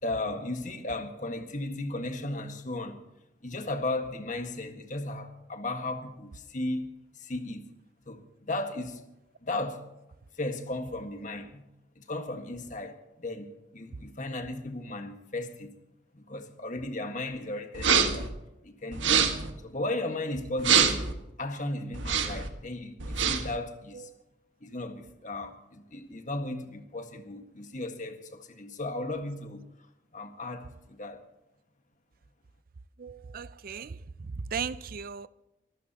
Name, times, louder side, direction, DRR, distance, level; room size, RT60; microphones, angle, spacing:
voice 1, 0.0-3.0 3.4-6.9 7.1-7.7 8.1-9.0 9.4-9.9 10.4-11.7 11.9-13.5 13.7-15.7 16.1-18.3 18.6-19.3 19.6-21.0 21.4-24.1 24.6-29.6 30.1-31.2, left 2 dB, 45° left, 1.7 m, -35 dB
sound 1, 17.8-18.3 18.9-19.5 20.6-21.1 21.9-22.5 23.0-23.6, right 7 dB, 90° right, 1.6 m, -25 dB
voice 2, 33.0-34.0 34.5-35.3, right 6 dB, 50° right, 0.5 m, -37 dB
24.0 x 15.0 x 2.9 m
head